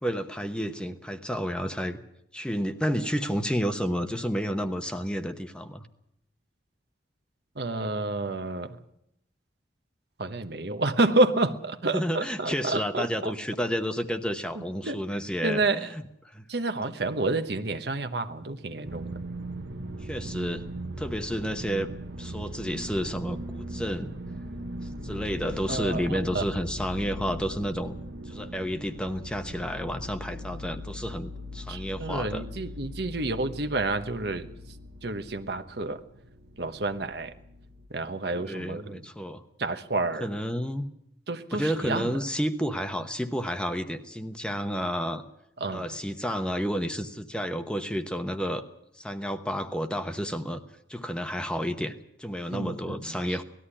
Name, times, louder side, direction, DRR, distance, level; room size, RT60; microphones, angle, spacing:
voice 1, 0.0-2.0 2.3-5.9 11.9-16.0 16.3-16.5 20.0-20.6 21.0-21.9 22.2-24.1 25.0-28.0 28.3-32.4 38.3-39.4 40.2-40.9 41.5-45.2 45.7-48.7 48.9-50.6 50.9-53.4, equal, 5° left, 7 dB, 0.9 m, -31 dB
voice 2, 7.6-8.8 10.2-13.3 14.6-15.9 16.5-19.2 25.7-26.4 31.7-34.5 35.0-36.0 36.6-37.3 37.9-39.1 39.6-40.3 41.3-42.1 45.6-45.9 52.5-53.2, right 2 dB, 60° right, 10 dB, 1.1 m, -29 dB
sound 1, 18.8-37.9, equal, 75° right, 1.3 m, -39 dB
19.0 x 13.5 x 9.9 m, 0.78 s
head